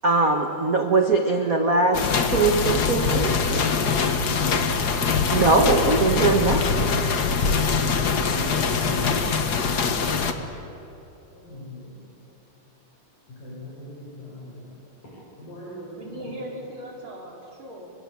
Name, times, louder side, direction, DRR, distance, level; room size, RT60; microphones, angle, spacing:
voice 1, 0.0-3.8 5.3-6.8, right 3 dB, 75° right, 0.8 m, -21 dB
sound 1, 1.9-10.3, left 5 dB, 55° left, 1.1 m, -23 dB
voice 2, 4.0-4.4 7.0-9.2 9.6-10.2 11.3-12.1 13.3-14.8 15.4-16.3, left 1 dB, 75° left, 8.8 m, -40 dB
voice 3, 15.9-17.9, equal, 35° right, 5.1 m, -38 dB
30.0 x 22.5 x 8.5 m
omnidirectional pair, 3.8 m